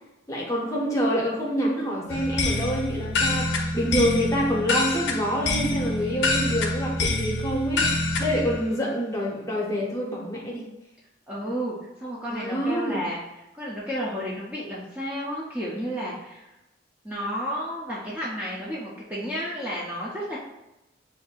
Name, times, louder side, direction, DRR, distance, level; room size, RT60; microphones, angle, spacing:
voice 1, 0.3-10.7 12.3-13.0, equal, 15° left, -3 dB, 0.9 m, -27 dB
sound 1, 2.1-8.6, left 2 dB, 85° left, 0.7 m, -26 dB
voice 2, 11.3-13.2 13.5-16.4 17.0-20.4, equal, 10° right, -7 dB, 0.6 m, -32 dB
7.0 x 2.7 x 2.4 m, 0.95 s
head